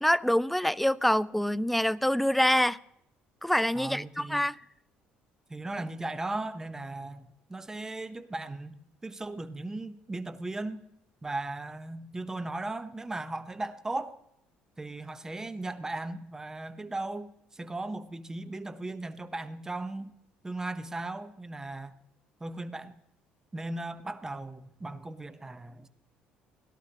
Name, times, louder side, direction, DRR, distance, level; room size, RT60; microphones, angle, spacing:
voice 1, 0.0-2.8 3.4-4.6, equal, 5° left, 0.3 m, -25 dB
voice 2, 3.7-4.4 5.5-10.8 11.2-14.2 14.8-20.1 20.4-22.0 22.4-22.9 23.5-25.9, right 2 dB, 15° right, 0.9 m, -37 dB
17.5 x 11.5 x 2.9 m
supercardioid pair, 90°, 3 cm